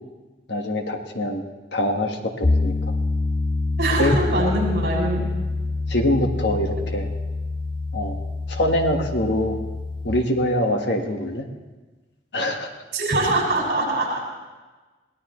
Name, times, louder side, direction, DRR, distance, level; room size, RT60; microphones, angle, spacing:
voice 1, 0.5-1.4 1.7-2.7 4.0-4.1 5.9-7.1 7.9-8.2 8.5-9.6 10.0-11.4 12.3-12.7, left 1 dB, 70° left, 3 dB, 1.7 m, -24 dB
Piano, 2.4-10.1, left 3 dB, 25° left, 0.6 m, -26 dB
voice 2, 3.8-5.2 12.9-14.2, right 2 dB, 55° right, -2 dB, 6.3 m, -23 dB
22.5 x 17.5 x 3.2 m, 1.3 s
head